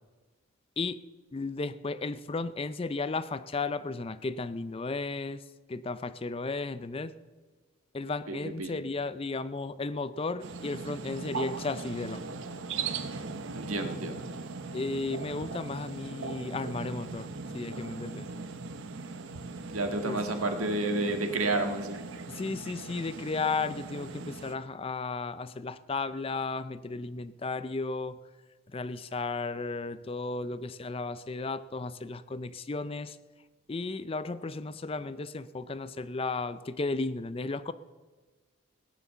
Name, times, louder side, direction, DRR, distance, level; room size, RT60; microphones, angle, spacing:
voice 1, 1.3-7.1 7.9-12.3 14.7-18.3 20.0-20.2 22.3-28.2 28.7-33.2 33.7-37.7, left 3 dB, 25° left, 15 dB, 0.4 m, -34 dB
voice 2, 8.3-8.7 13.5-14.2 19.7-22.0, right 2 dB, 90° right, 5 dB, 1.8 m, -30 dB
sound 1, 10.4-24.5, right 4 dB, 65° right, 0.9 m, -39 dB
17.0 x 9.7 x 6.8 m, 1.3 s
head